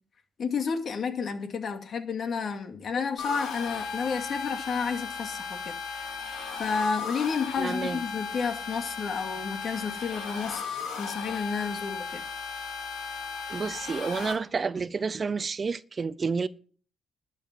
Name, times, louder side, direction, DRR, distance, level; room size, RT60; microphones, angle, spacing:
voice 1, 0.4-5.7 6.6-10.6 11.0-12.2, left 5 dB, 55° left, 2.5 m, -31 dB
sound 1, 3.2-14.3, left 5 dB, 85° left, 4.4 m, -36 dB
voice 2, 7.6-8.0 13.5-16.5, right 5 dB, 35° right, 0.6 m, -30 dB
12.0 x 6.8 x 7.9 m
cardioid pair, 90°, 0 cm